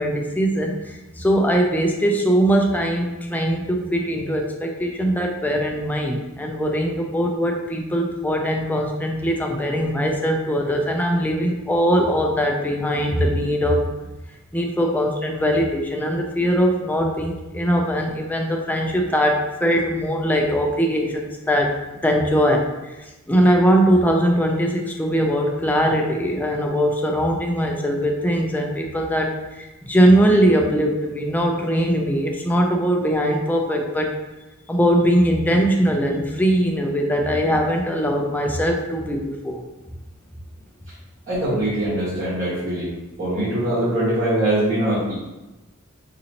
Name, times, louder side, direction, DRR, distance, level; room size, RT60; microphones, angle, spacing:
voice 1, 0.0-13.9 14.5-21.8 22.0-34.1 34.7-39.6, equal, 10° left, 1 dB, 0.4 m, -21 dB
voice 2, 41.3-42.9 43.2-45.1, right 1 dB, 40° right, -14 dB, 1.3 m, -22 dB
3.9 x 2.7 x 2.8 m, 1.1 s
head